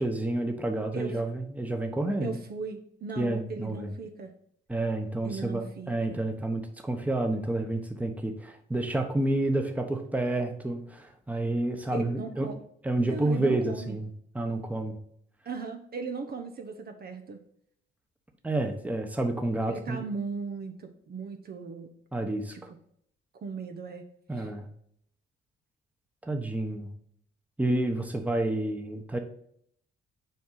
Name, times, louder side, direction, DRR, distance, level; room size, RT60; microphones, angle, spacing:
voice 1, 0.0-2.4 3.2-3.9 4.7-12.5 12.8-14.1 14.3-15.0 18.4-20.0 22.1-22.5 24.3-24.7 26.2-26.9 27.6-29.2, right 2 dB, 5° right, 4 dB, 1.1 m, -29 dB
voice 2, 2.2-4.3 5.2-6.2 11.9-12.6 13.0-14.0 15.4-17.4 19.7-21.9 22.5-22.6 23.4-24.0 24.4-24.5, right 4 dB, 50° right, 6 dB, 0.9 m, -37 dB
6.9 x 4.7 x 3.9 m, 0.69 s
cardioid pair, 90°, 20 cm